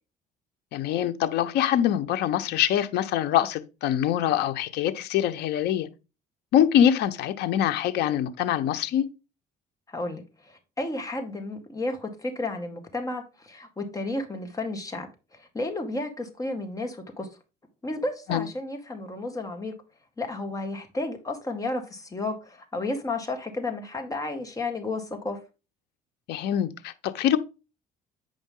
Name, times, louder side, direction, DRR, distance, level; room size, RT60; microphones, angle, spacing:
voice 1, 0.7-5.9 6.5-9.0 18.3-18.5 26.3-27.4, left 10 dB, 80° left, 1.0 m, -24 dB
voice 2, 9.9-17.3 17.8-19.7 20.2-25.4, left 2 dB, 20° left, 2.0 m, -32 dB
9.1 x 5.3 x 3.7 m
cardioid pair, 110°, 17 cm